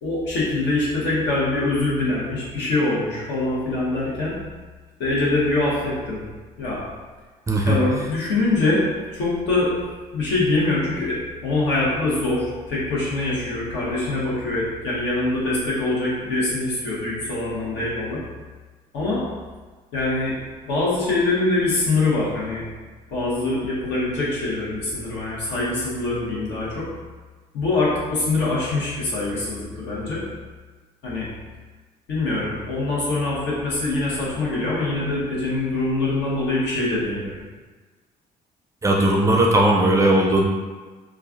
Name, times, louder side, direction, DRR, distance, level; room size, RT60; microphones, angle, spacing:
voice 1, 0.0-4.4 5.0-6.2 6.6-6.8 7.7-8.8 9.1-9.7 10.1-11.2 11.4-18.2 18.9-19.2 19.9-20.3 20.6-22.6 23.1-26.9 27.5-30.2 31.0-31.3 32.1-37.4, left 2 dB, 80° left, -7 dB, 1.1 m, -24 dB
voice 2, 7.5-7.8 38.8-40.4, right 1 dB, 20° right, -1 dB, 0.4 m, -18 dB
3.1 x 2.4 x 2.4 m, 1.3 s
cardioid pair, 110°, 17 cm